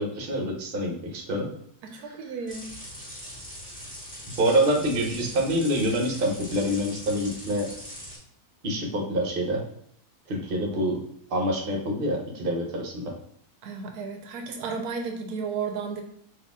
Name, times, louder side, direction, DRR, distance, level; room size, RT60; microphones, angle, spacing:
voice 1, 0.0-1.5 1.9-2.2 4.4-7.7 8.6-9.6 10.3-11.0 11.3-13.1, equal, 40° right, 1 dB, 0.9 m, -26 dB
voice 2, 1.8-2.7 13.6-16.0, right 5 dB, 80° right, 4 dB, 1.1 m, -33 dB
sound 1, 2.5-8.2, equal, 5° left, 1.4 m, -41 dB
4.1 x 2.8 x 3.5 m, 0.69 s
omnidirectional pair, 1.7 m